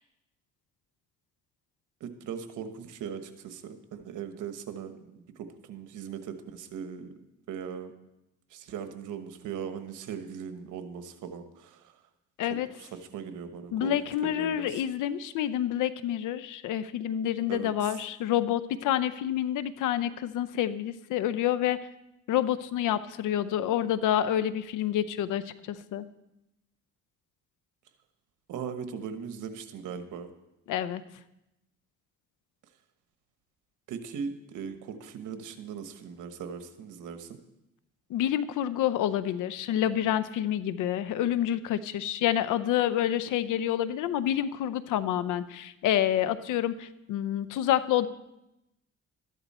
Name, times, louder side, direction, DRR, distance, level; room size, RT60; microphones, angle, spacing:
voice 1, 2.0-7.1 7.5-7.9 8.5-11.9 12.8-13.9 14.2-14.8 17.5-18.0 28.5-30.3 33.9-37.4, right 7 dB, 85° right, 8 dB, 1.2 m, -39 dB
voice 2, 13.7-21.8 22.3-26.1 30.7-31.0 38.1-48.1, left 11 dB, 85° left, 15 dB, 0.7 m, -28 dB
13.0 x 11.0 x 4.3 m, 0.90 s
cardioid pair, 90°, 30 cm